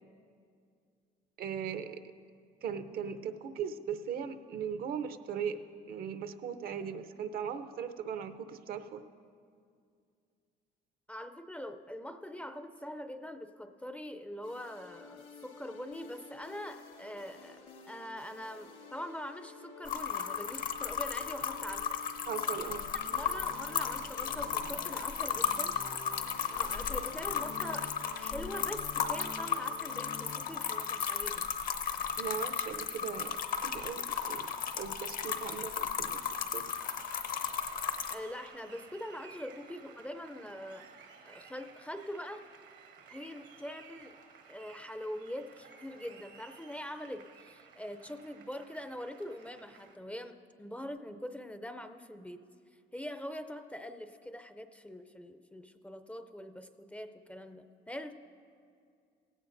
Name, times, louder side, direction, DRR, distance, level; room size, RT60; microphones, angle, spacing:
voice 1, 1.4-2.0 2.6-9.0 22.3-22.9 32.2-34.5 34.8-36.7, right 7 dB, 60° right, 10 dB, 0.7 m, -39 dB
voice 2, 11.1-22.0 23.1-25.8 26.5-31.5 38.1-40.9 41.2-42.4 43.1-44.1 44.5-52.4 52.9-58.2, equal, 10° left, 9 dB, 0.5 m, -43 dB
sound 1, 14.4-30.4, left 4 dB, 75° left, 2.2 m, -50 dB
sound 2, 19.9-38.1, left 7 dB, 55° left, 0.8 m, -35 dB
Applause, 36.3-50.0, right 6 dB, 80° right, 1.4 m, -56 dB
17.0 x 16.5 x 2.6 m, 2.3 s
cardioid pair, 110°, 17 cm